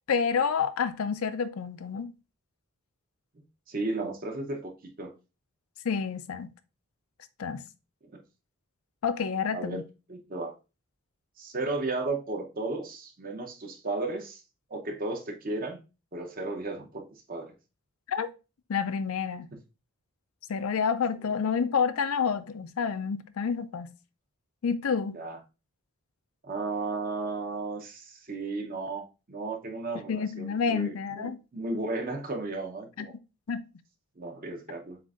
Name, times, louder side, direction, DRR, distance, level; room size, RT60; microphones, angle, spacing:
voice 1, 0.1-2.1 5.8-6.5 7.4-7.6 9.0-9.8 18.1-18.3 18.7-19.5 20.5-23.9 24.6-25.2 30.1-31.4 33.0-33.1 33.5-33.6, left 6 dB, 75° left, 0.4 m, -29 dB
voice 2, 3.7-4.7 5.0-5.1 8.1-8.2 9.5-9.8 10.1-10.6 11.4-14.4 14.7-15.8 16.1-17.5 25.1-25.4 26.4-33.1 34.2-35.0, right 2 dB, 40° right, 0.8 m, -34 dB
7.5 x 2.6 x 2.4 m
head